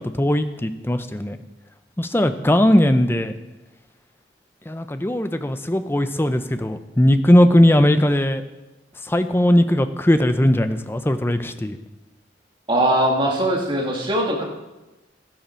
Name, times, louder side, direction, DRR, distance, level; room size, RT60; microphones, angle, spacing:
voice 1, 0.0-1.4 2.0-3.3 4.7-8.4 9.0-11.8, left 1 dB, 10° left, 9 dB, 0.5 m, -18 dB
voice 2, 12.7-14.4, right 1 dB, 25° right, -1 dB, 2.0 m, -20 dB
12.0 x 11.5 x 4.4 m, 1.1 s
head